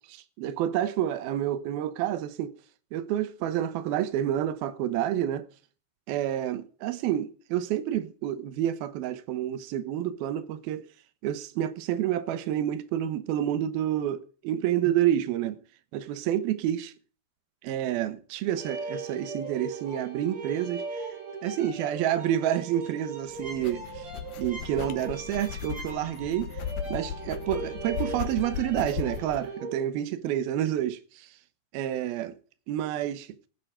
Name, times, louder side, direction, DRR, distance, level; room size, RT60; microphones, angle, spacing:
voice 1, 0.1-2.6 2.9-5.5 6.1-10.9 11.2-15.6 15.9-16.9 17.6-21.1 21.4-24.1 24.4-26.6 26.9-31.4 31.7-32.3 32.7-33.4, right 11 dB, 80° right, 2.9 m, -29 dB
sound 1, 18.6-29.8, right 3 dB, 45° right, 6.3 m, -39 dB
sound 2, 23.3-29.4, left 9 dB, 65° left, 2.7 m, -37 dB
16.5 x 10.5 x 5.0 m
omnidirectional pair, 4.3 m